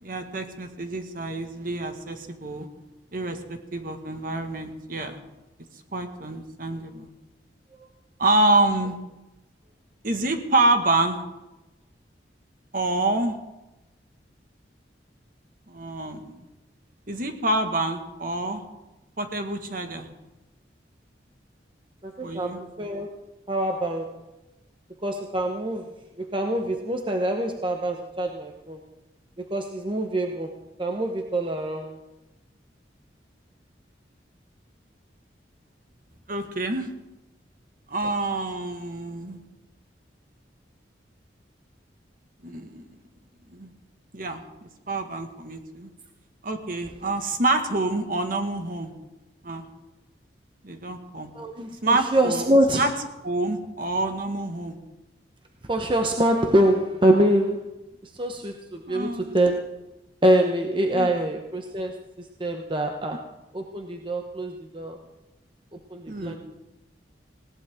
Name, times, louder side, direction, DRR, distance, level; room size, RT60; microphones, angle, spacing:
voice 1, 0.0-2.7 3.1-5.2 5.9-7.1 8.2-9.0 10.0-11.2 12.7-13.4 15.7-16.2 17.1-18.6 19.2-20.1 22.2-22.6 36.3-36.9 37.9-39.4 42.4-42.8 43.5-43.7 44.1-45.9 46.4-48.9 49.4-49.6 50.6-51.3 51.8-52.5 52.8-52.9 53.2-54.8 58.9-59.4 60.9-61.3 66.1-66.4, right 2 dB, 50° right, 5 dB, 1.7 m, -27 dB
voice 2, 22.0-23.1 23.5-24.1 25.0-25.9 26.2-28.8 29.5-30.5 30.8-32.0 38.0-38.1 51.3-52.9 55.6-57.7 58.0-59.6 60.2-63.3 63.5-65.0 65.7-66.3, right 1 dB, 30° right, 3 dB, 1.0 m, -25 dB
20.0 x 17.5 x 3.7 m, 0.99 s
head